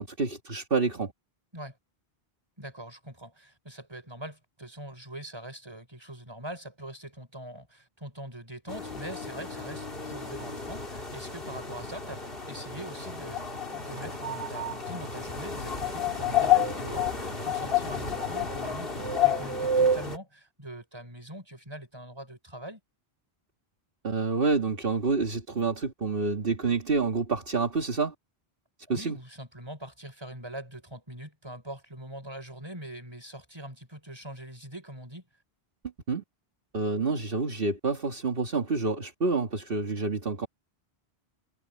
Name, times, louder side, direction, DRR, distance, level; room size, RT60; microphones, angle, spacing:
voice 1, 0.2-1.1 24.0-28.1 28.9-29.2 36.1-36.2 36.7-40.5, right 4 dB, 65° right, 2.0 m, -28 dB
voice 2, 2.6-12.2 12.5-22.8 28.9-35.3, right 1 dB, 25° right, 5.3 m, -43 dB
sound 1, 8.7-20.2, left 4 dB, 65° left, 3.2 m, -30 dB
omnidirectional pair, 1.0 m